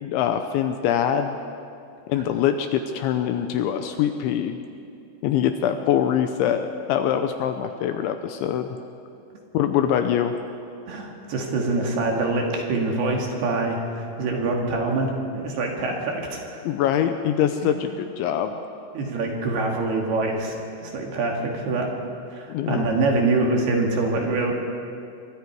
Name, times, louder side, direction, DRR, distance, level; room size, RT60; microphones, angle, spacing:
voice 1, 0.0-1.4 2.1-4.6 5.2-8.8 9.5-10.4 16.6-18.6 22.5-22.9, left 9 dB, 80° left, 7 dB, 2.8 m, -23 dB
voice 2, 10.9-16.6 17.6-17.7 18.9-21.9 22.3-24.5, right 3 dB, 60° right, 0 dB, 3.7 m, -25 dB
26.5 x 23.0 x 4.7 m, 2.5 s
omnidirectional pair, 5.8 m